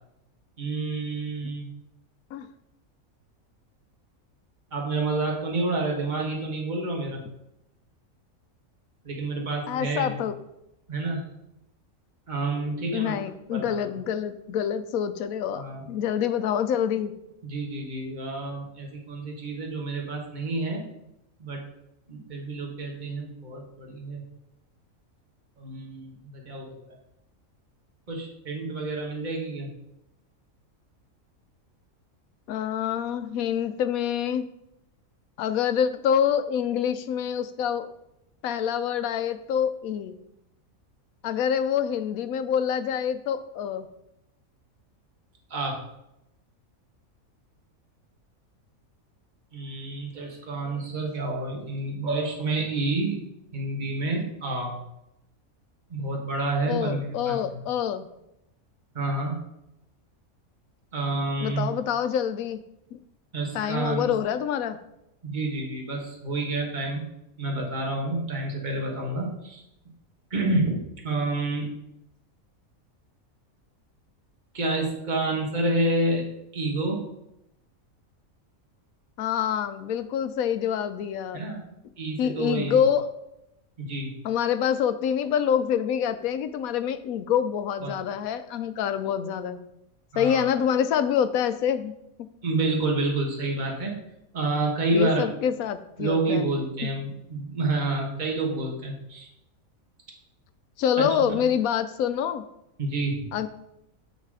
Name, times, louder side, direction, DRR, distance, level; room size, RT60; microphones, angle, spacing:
voice 1, 0.6-1.7 4.7-7.2 9.0-10.2 10.9-11.2 12.3-13.2 13.5-13.8 15.5-15.9 17.4-20.9 21.4-21.6 22.1-24.2 25.6-26.7 28.1-29.7 45.5-45.8 49.5-54.8 55.9-57.7 58.9-59.4 60.9-61.7 63.3-64.1 65.2-67.1 67.4-69.6 70.3-71.7 74.5-77.0 81.3-81.7 82.0-82.8 83.8-84.1 87.8-88.0 90.1-90.5 92.4-94.0 94.3-95.3 96.0-99.3 100.9-101.5 102.8-103.3, right 2 dB, 35° right, 0 dB, 1.5 m, -29 dB
voice 2, 9.7-10.4 12.9-17.1 32.5-34.5 35.4-37.9 38.4-40.1 41.2-43.9 56.7-58.1 61.4-62.6 62.9-63.0 63.5-64.8 79.2-81.4 82.2-83.0 84.2-89.6 90.2-91.9 92.2-92.3 94.9-96.5 96.8-96.9 100.8-102.4 103.3-103.5, left 8 dB, 80° left, 11 dB, 1.1 m, -26 dB
8.2 x 4.1 x 4.8 m, 0.84 s
omnidirectional pair, 1.5 m